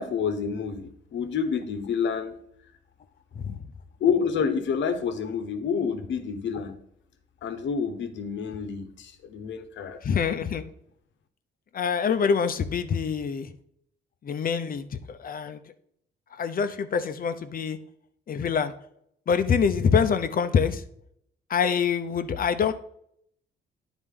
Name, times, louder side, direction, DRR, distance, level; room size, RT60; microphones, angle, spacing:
voice 1, 0.0-2.4 4.0-6.8 7.4-10.0, left 6 dB, 70° left, 8 dB, 1.0 m, -28 dB
voice 2, 10.0-10.6 11.7-13.5 14.2-15.6 16.3-17.8 18.3-18.7 19.3-20.8 21.5-22.7, left 6 dB, 45° left, 10 dB, 0.7 m, -25 dB
9.7 x 4.0 x 3.7 m, 0.70 s
cardioid pair, 90°, 20 cm